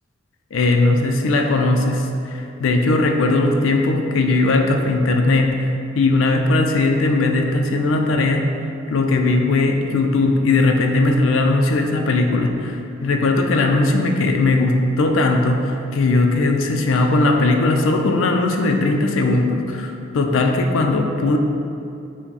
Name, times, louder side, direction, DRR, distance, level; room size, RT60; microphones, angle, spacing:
voice 1, 0.5-8.5 8.9-21.4, left 2 dB, 80° left, 3 dB, 0.4 m, -18 dB
5.9 x 2.2 x 4.0 m, 2.6 s
head